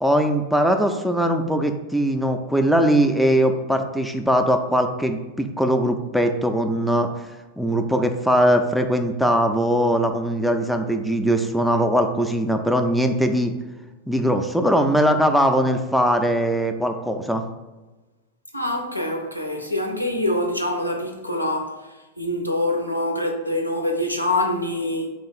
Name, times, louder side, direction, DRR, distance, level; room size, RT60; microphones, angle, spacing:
voice 1, 0.0-7.3 7.6-13.5 14.1-17.4, equal, ahead, 0.3 m, -20 dB
voice 2, 18.5-21.8 22.2-25.1, left 1 dB, 90° left, 0.6 m, -25 dB
3.9 x 3.0 x 4.3 m
figure-of-eight pair, 90°, 0 cm